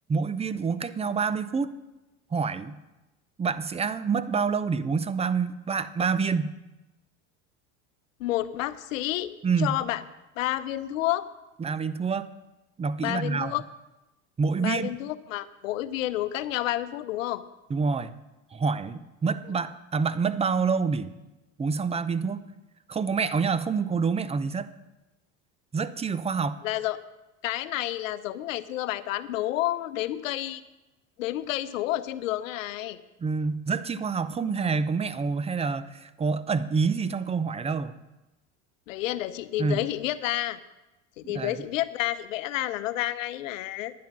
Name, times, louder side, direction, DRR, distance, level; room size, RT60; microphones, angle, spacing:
voice 1, 0.1-1.7 2.3-2.8 3.4-6.5 9.4-9.8 11.6-12.3 12.8-13.5 14.4-14.9 17.7-18.1 18.5-21.1 21.6-22.4 22.9-24.7 25.7-26.6 33.2-37.9 39.6-39.9 41.2-41.6, right 5 dB, 15° right, 14 dB, 0.6 m, -27 dB
voice 2, 8.2-10.0 10.4-11.3 13.0-13.6 14.6-17.4 26.6-27.0 27.4-30.6 31.2-33.0 38.9-40.6 41.2-43.9, left 14 dB, 85° left, 13 dB, 0.8 m, -30 dB
10.5 x 9.4 x 5.9 m, 1.0 s
supercardioid pair, 95°, 38 cm